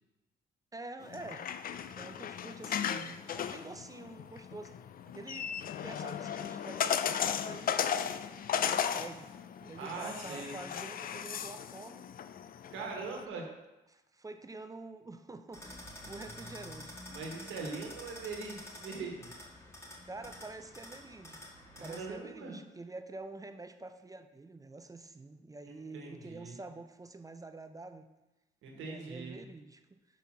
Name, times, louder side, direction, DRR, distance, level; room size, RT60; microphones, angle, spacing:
voice 1, 0.7-1.5 2.0-4.8 5.1-9.3 9.6-12.1 12.8-13.4 13.9-16.9 20.1-21.4 21.8-28.1 28.7-29.8, right 3 dB, 15° right, 9 dB, 0.4 m, -47 dB
sound 1, 1.0-13.2, left 8 dB, 45° left, 0.4 m, -36 dB
voice 2, 9.8-10.6 12.7-13.4 17.1-19.3 21.7-22.6 25.6-26.6 28.6-29.4, right 4 dB, 85° right, 0 dB, 1.4 m, -42 dB
sound 2, 15.5-22.1, left 1 dB, 15° left, 1.8 m, -48 dB
5.4 x 4.5 x 6.0 m, 1.0 s
cardioid pair, 90°, 20 cm